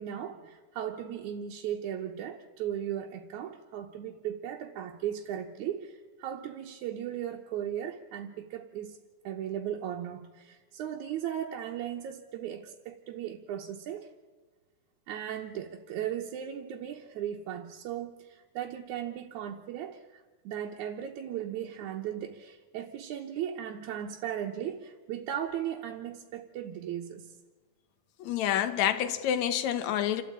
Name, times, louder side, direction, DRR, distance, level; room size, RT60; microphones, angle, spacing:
voice 1, 0.0-9.0 9.2-14.1 15.1-27.3, right 10 dB, 75° right, 2.3 m, -37 dB
voice 2, 28.2-30.2, left 10 dB, 70° left, 2.3 m, -28 dB
28.0 x 13.0 x 8.7 m
omnidirectional pair, 3.6 m